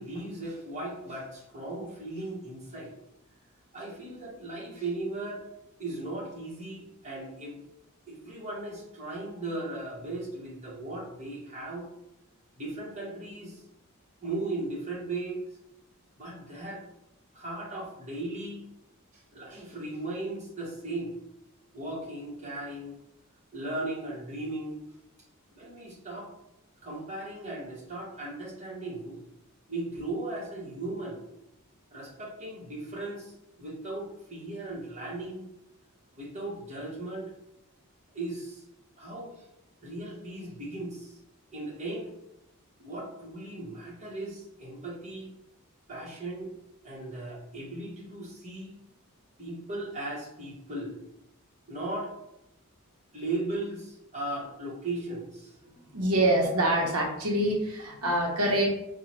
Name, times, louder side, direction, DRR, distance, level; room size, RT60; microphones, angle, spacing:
voice 1, 0.0-2.9 3.7-5.4 5.8-7.6 8.1-11.9 12.6-13.6 14.2-15.4 16.1-16.8 17.3-18.6 19.1-21.1 21.7-22.9 23.5-24.8 25.5-26.3 26.8-29.2 29.7-31.2 31.9-35.4 36.1-37.3 38.1-38.6 39.0-39.4 39.8-41.2 41.5-42.1 42.8-45.3 45.9-46.5 46.8-48.8 49.4-51.0 51.7-52.1 53.1-55.7, right 2 dB, 30° right, -5 dB, 1.3 m, -37 dB
voice 2, 55.9-58.7, right 1 dB, 85° right, -1 dB, 0.9 m, -25 dB
4.7 x 2.3 x 3.1 m, 0.87 s
head